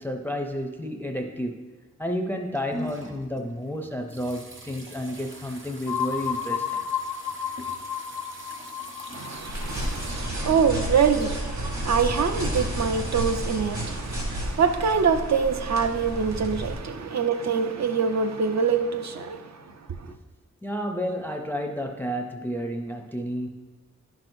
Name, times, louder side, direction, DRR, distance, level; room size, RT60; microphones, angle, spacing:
voice 1, 0.0-1.6 2.0-6.8 20.1-20.2 20.6-23.5, equal, 5° left, 0.5 m, -31 dB
sound 1, 2.4-10.1, equal, 45° right, 1.0 m, -42 dB
sound 2, 5.9-11.5, left 8 dB, 90° left, 0.5 m, -33 dB
voice 2, 9.1-20.1, right 6 dB, 65° right, 0.6 m, -25 dB
sound 3, 9.5-16.7, equal, 80° right, 1.9 m, -31 dB
10.5 x 6.0 x 2.6 m
wide cardioid pair, 85°, 29 cm